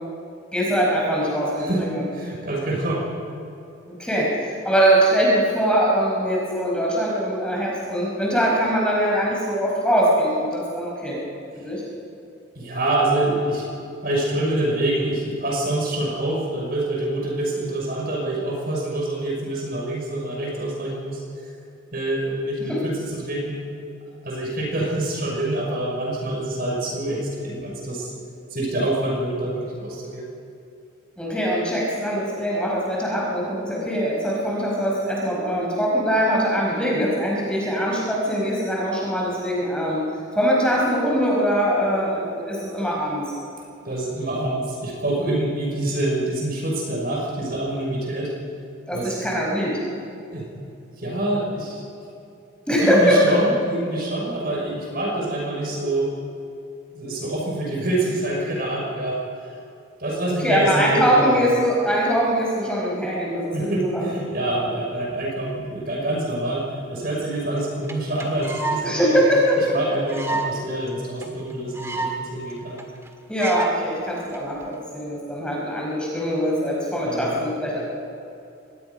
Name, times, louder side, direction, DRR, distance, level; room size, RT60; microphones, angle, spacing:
voice 1, 0.5-2.0 3.9-11.2 11.5-11.8 22.7-22.8 31.2-40.0 40.3-43.2 48.9-49.7 52.7-53.4 60.4-64.1 68.8-69.7 73.3-77.8, equal, 5° left, -4 dB, 4.9 m, -22 dB
voice 2, 1.6-1.9 2.1-3.1 12.5-13.7 14.0-21.2 21.9-23.6 24.2-28.1 28.5-30.3 43.8-48.3 48.9-49.2 50.3-50.5 51.0-51.8 52.8-56.2 56.9-59.2 60.0-61.4 63.5-69.2 69.7-72.8 77.0-77.5, right 1 dB, 45° right, -2 dB, 6.1 m, -26 dB
sound 1, 67.6-67.7 67.9-68.0 68.2-68.8 69.2-69.3 69.5-69.6 70.1-70.5 70.9-71.0 71.2-71.3 71.5-72.2 72.5-72.6 72.8-73.1 73.4-73.7 74.3-74.6, right 3 dB, 15° right, 1.8 m, -28 dB
24.5 x 20.5 x 5.5 m, 2.6 s
head